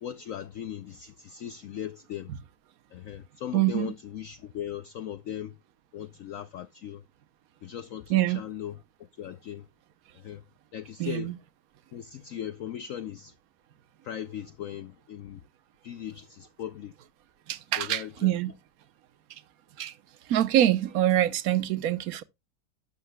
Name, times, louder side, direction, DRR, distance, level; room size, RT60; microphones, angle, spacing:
voice 1, 0.0-2.3 2.9-5.6 5.9-7.0 7.6-8.8 9.2-9.7 10.1-10.4 10.7-11.3 11.9-13.3 14.0-15.4 15.8-16.9 17.8-18.3, left 10 dB, 65° left, 0.9 m, -38 dB
voice 2, 3.5-3.9 8.1-8.4 11.0-11.3 17.5-18.5 19.8-19.9 20.3-22.2, right 12 dB, 60° right, 1.2 m, -25 dB
12.0 x 8.4 x 2.2 m
omnidirectional pair, 1.8 m